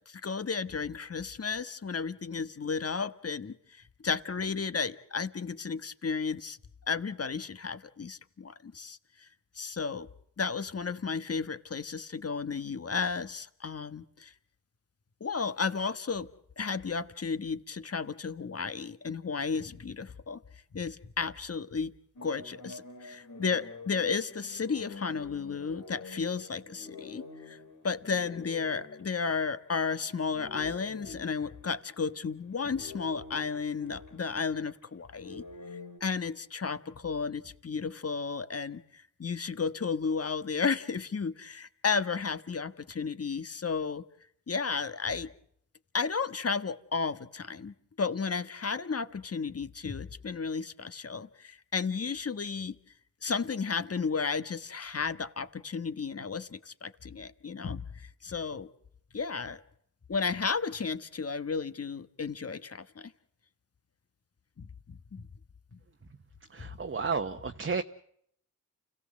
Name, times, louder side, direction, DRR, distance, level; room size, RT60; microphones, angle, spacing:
voice 1, 0.1-6.6 6.9-9.3 9.6-10.1 10.4-14.3 15.2-16.3 16.6-20.4 20.7-21.9 22.2-27.6 27.8-35.4 36.0-44.0 44.5-45.3 45.9-52.7 53.2-58.7 59.1-59.6 60.1-63.1 64.6-65.3 65.7-65.8, left 5 dB, 45° left, 12 dB, 1.4 m, -33 dB
sound 1, 22.2-29.9 30.3-36.0, left 3 dB, 75° left, 4.4 m, -48 dB
voice 2, 66.5-67.8, right 5 dB, 40° right, 6 dB, 1.1 m, -32 dB
29.0 x 16.0 x 7.5 m, 0.69 s
cardioid pair, 55°, 33 cm